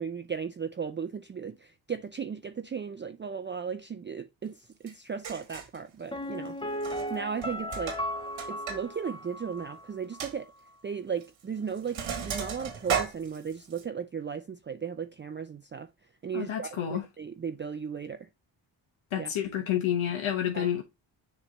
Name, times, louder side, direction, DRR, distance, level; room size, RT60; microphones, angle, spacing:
voice 1, 0.0-6.6 7.1-8.0 8.5-10.5 10.8-15.9 16.2-18.3 19.2-19.3 20.5-20.7, right 6 dB, 25° right, 0.4 m, -36 dB
Sink (filling or washing), 4.9-5.0 5.2-5.8 6.7-7.1 7.4-8.8 9.1-9.2 9.6-9.7 10.2-10.3 11.2-11.4 11.7-13.8, right 7 dB, 90° right, 1.7 m, -34 dB
Piano, 6.1-9.9 10.1-10.2, equal, 10° left, 0.6 m, -36 dB
voice 2, 16.3-17.0 19.1-20.8, left 10 dB, 85° left, 1.2 m, -29 dB
7.0 x 3.3 x 4.1 m
cardioid pair, 70°, 46 cm